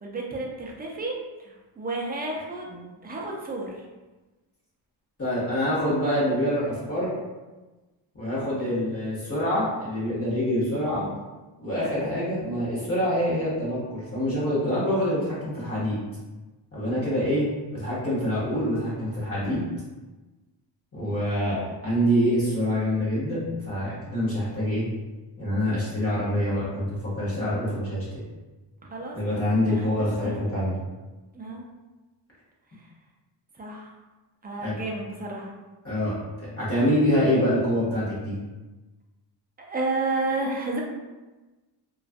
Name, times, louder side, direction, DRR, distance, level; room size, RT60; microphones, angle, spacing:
voice 1, 0.0-2.7 3.0-3.8 8.6-8.9 21.6-21.7 28.8-30.4 31.3-31.6 33.6-33.9 34.4-35.5 39.6-40.8, right 2 dB, 20° right, -2 dB, 0.3 m, -32 dB
voice 2, 5.2-7.1 8.1-11.1 11.6-16.0 16.7-17.5 17.7-19.6 20.9-24.8 25.4-28.0 29.1-30.7 34.6-34.7 35.8-38.3, equal, 30° left, -9 dB, 0.9 m, -26 dB
2.3 x 2.3 x 2.5 m, 1.2 s
cardioid pair, 110°, 45 cm